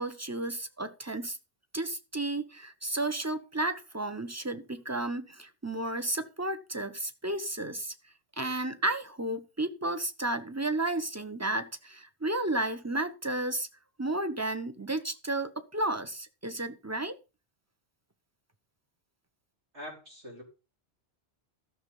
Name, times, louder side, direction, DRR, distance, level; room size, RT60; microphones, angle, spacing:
voice 1, 0.0-1.4 1.7-7.9 8.4-13.7 14.0-17.1, right 2 dB, 15° right, 9 dB, 0.9 m, -32 dB
voice 2, 19.7-20.4, equal, 80° right, -1 dB, 4.7 m, -43 dB
13.0 x 6.4 x 5.5 m, 0.31 s
omnidirectional pair, 1.2 m